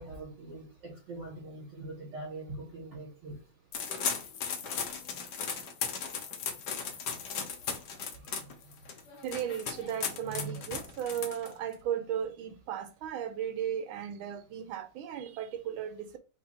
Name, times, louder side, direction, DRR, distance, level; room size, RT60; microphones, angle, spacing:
voice 1, 0.0-3.4 10.3-10.9, right 2 dB, 60° right, 2.5 m, -42 dB
sound 1, 3.7-11.7, left 6 dB, 65° left, 1.2 m, -36 dB
voice 2, 9.2-16.2, right 9 dB, 85° right, 1.4 m, -36 dB
4.5 x 2.5 x 4.2 m
omnidirectional pair, 2.2 m